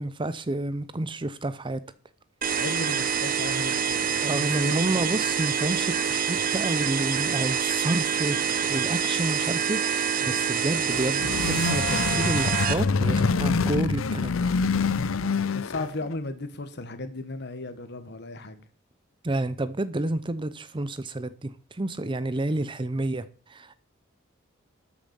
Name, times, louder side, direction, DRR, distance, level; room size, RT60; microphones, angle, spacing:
voice 1, 0.0-1.8 4.2-14.5 19.2-23.7, right 2 dB, 25° right, 0.6 m, -30 dB
sound 1, 2.4-12.7, right 7 dB, 45° right, 1.2 m, -26 dB
voice 2, 2.5-4.8 5.1-5.2 15.5-18.6, left 2 dB, 55° left, 1.6 m, -36 dB
sound 2, 10.8-16.1, left 4 dB, 80° left, 0.6 m, -26 dB
13.0 x 7.1 x 7.0 m
head